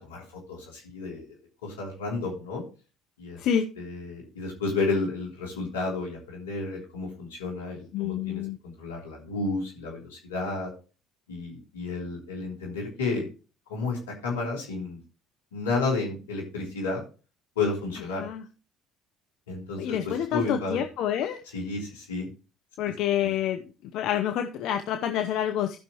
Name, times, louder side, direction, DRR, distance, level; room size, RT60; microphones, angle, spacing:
voice 1, 0.3-1.4 1.6-2.6 3.2-3.4 3.8-10.7 11.3-13.3 13.7-15.0 15.5-17.0 17.5-18.3 19.5-20.8 21.4-22.3 22.8-22.9 23.2-23.3, left 3 dB, 90° left, -2 dB, 3.3 m, -31 dB
voice 2, 7.9-8.6 18.2-18.4 19.8-21.4 22.8-23.6 23.9-25.8, left 10 dB, 65° left, 6 dB, 0.8 m, -27 dB
16.0 x 5.9 x 3.0 m, 0.33 s
hypercardioid pair, 65°, 0 cm